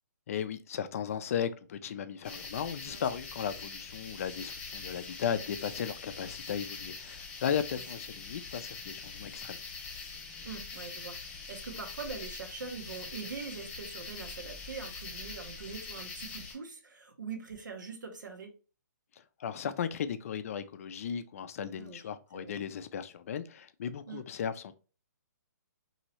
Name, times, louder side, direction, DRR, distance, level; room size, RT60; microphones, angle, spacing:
voice 1, 0.3-9.6 19.4-24.7, left 8 dB, 50° left, 0.3 m, -36 dB
sound 1, 2.2-16.5, left 4 dB, 20° left, 1.0 m, -43 dB
voice 2, 10.4-18.5 21.8-22.1 22.3-22.5 24.1-24.2, right 5 dB, 90° right, 0.8 m, -43 dB
3.0 x 2.7 x 2.9 m
hypercardioid pair, 150°, 10 cm